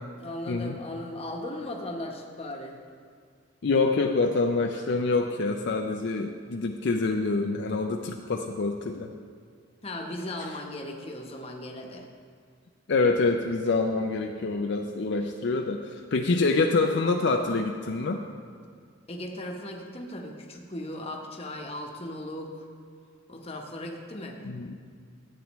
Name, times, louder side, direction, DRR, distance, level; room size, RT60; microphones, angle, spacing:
voice 1, 0.2-2.8 9.8-12.1 19.1-22.7 23.3-24.4, left 1 dB, 30° left, 1 dB, 1.0 m, -37 dB
voice 2, 3.6-9.1 10.4-10.5 12.9-18.2 24.4-24.8, left 3 dB, 60° left, 3 dB, 0.5 m, -26 dB
13.5 x 8.5 x 3.1 m, 2.1 s
head